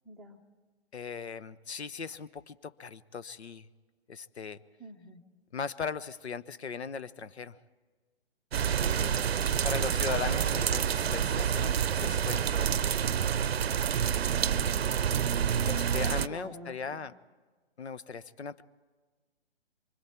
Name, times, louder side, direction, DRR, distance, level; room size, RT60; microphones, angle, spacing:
voice 1, 0.0-0.4 4.8-5.2 8.8-10.1 14.4-15.1 16.3-17.0, equal, ahead, 3 dB, 0.7 m, -48 dB
voice 2, 0.9-3.7 4.1-4.6 5.5-7.6 9.6-12.8 15.7-17.1 17.8-18.6, left 5 dB, 75° left, 16 dB, 0.9 m, -38 dB
sound 1, 8.5-16.3, right 8 dB, 65° right, 0.7 m, -28 dB
24.5 x 24.0 x 4.4 m, 1.4 s
figure-of-eight pair, 140°, 33 cm